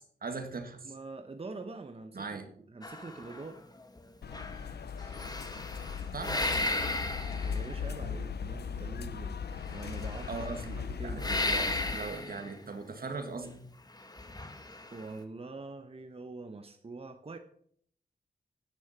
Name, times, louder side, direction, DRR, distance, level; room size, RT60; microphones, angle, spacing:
voice 1, 0.0-0.9 2.1-2.4 6.1-6.4 10.3-13.6, right 4 dB, 65° right, 6 dB, 1.9 m, -40 dB
voice 2, 0.8-2.4 2.7-3.6 7.4-9.4 9.6-11.2 14.2-14.6 14.9-17.4, right 3 dB, 35° right, 7 dB, 0.9 m, -44 dB
sound 1, 2.8-4.0 4.3-8.0 9.6-10.7 11.2-12.5 14.0-15.1, left 2 dB, 25° left, 1.4 m, -35 dB
sound 2, 4.2-12.0, left 6 dB, 90° left, 0.7 m, -38 dB
9.7 x 9.6 x 5.7 m, 0.63 s
wide cardioid pair, 80°, 17 cm